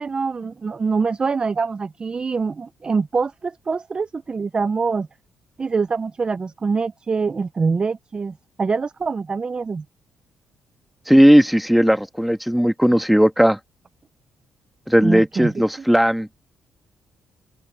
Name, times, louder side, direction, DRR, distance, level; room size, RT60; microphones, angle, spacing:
voice 1, 0.0-5.1 5.6-9.8 15.0-15.5, right 4 dB, 30° right, 0.6 m, -24 dB
voice 2, 11.1-13.6 14.9-16.4, equal, ahead, 2.1 m, -16 dB
open air
cardioid pair, 90°, 3 cm